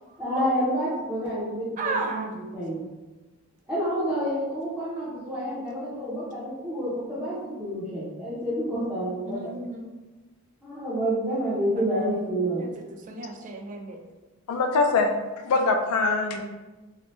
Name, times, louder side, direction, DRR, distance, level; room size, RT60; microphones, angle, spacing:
voice 1, 0.2-2.8 3.7-9.5 10.6-12.6, equal, 5° right, -13 dB, 0.7 m, -29 dB
voice 2, 1.8-2.3 9.2-9.9 11.9-12.0 12.5-12.7 13.1-14.0, right 3 dB, 35° right, 2 dB, 0.3 m, -33 dB
voice 3, 14.5-15.1 15.4-16.4, left 3 dB, 75° left, 5 dB, 0.3 m, -22 dB
2.8 x 2.1 x 3.1 m, 1.2 s
head